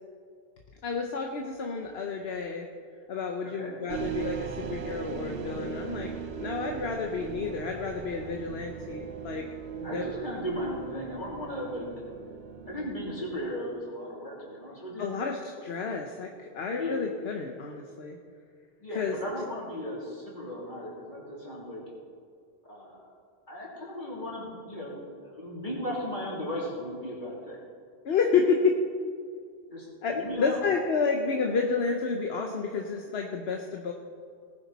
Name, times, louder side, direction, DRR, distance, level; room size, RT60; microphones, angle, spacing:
voice 1, 0.8-2.7 3.1-9.4 9.8-10.0 15.0-18.2 18.9-19.1 28.0-28.7 30.0-33.9, left 5 dB, 75° left, 2 dB, 1.2 m, -30 dB
sound 1, 3.9-13.6, right 8 dB, 80° right, 1.0 m, -38 dB
voice 2, 9.8-11.9 12.7-15.1 16.8-17.0 18.8-21.8 22.7-23.1 23.5-27.6 29.7-30.6, equal, 50° left, -6 dB, 3.6 m, -36 dB
19.0 x 10.0 x 4.1 m, 2.2 s
omnidirectional pair, 1.1 m